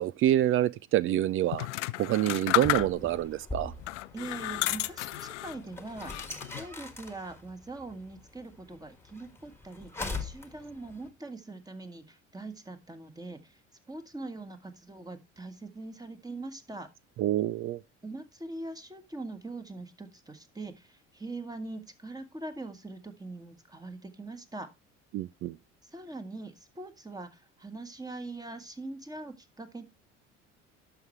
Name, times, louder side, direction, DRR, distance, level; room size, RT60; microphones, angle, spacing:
voice 1, 0.0-1.7 2.0-3.7 17.2-17.8 25.1-25.6, right 13 dB, 35° right, 0.4 m, -27 dB
sound 1, 1.5-3.2 3.8-5.6 6.0-6.6, left 16 dB, 75° left, 0.5 m, -32 dB
sound 2, 2.4-11.1, left 3 dB, 5° left, 1.5 m, -43 dB
voice 2, 4.1-13.6 13.9-16.9 18.0-24.7 25.8-29.8, right 2 dB, 10° right, 1.5 m, -42 dB
12.0 x 5.9 x 3.2 m
figure-of-eight pair, 60°, 36 cm